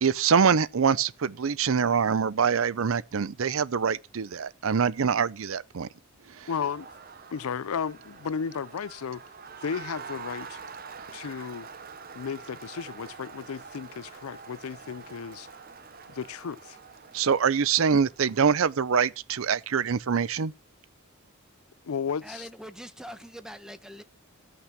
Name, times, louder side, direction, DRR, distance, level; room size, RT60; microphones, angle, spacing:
voice 1, 0.0-5.9 6.4-6.5 17.1-20.5, right 6 dB, 70° right, 0.5 m, -24 dB
Crowd, 6.3-18.8, right 5 dB, 45° right, 0.9 m, -45 dB
voice 2, 6.5-6.9 7.3-9.2 9.6-10.6 11.1-11.7 12.1-15.5 16.1-16.8 21.8-22.4, left 6 dB, 80° left, 0.5 m, -34 dB
voice 3, 22.2-24.0, equal, 5° right, 1.1 m, -43 dB
15.0 x 5.9 x 5.9 m
head